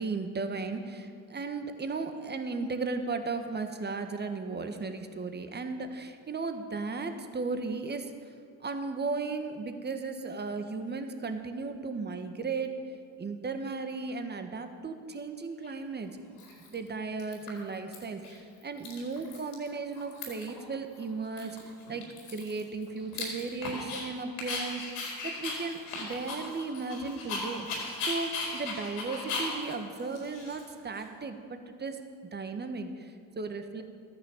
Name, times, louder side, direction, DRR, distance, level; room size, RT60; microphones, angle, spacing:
voice 1, 0.0-8.1 8.6-12.7 13.2-16.2 16.7-21.6 21.9-32.0 32.3-33.8, right 4 dB, 25° right, 7 dB, 1.5 m, -36 dB
Dog, 15.6-15.7 16.4-16.9 17.2-18.0 18.2-18.4 18.6-19.7 19.9-20.6 20.9-21.0 21.4-24.0 24.4-31.0, left 3 dB, 80° left, 4.2 m, -37 dB
13.0 x 10.5 x 7.3 m, 2.2 s
hypercardioid pair, 70°, 39 cm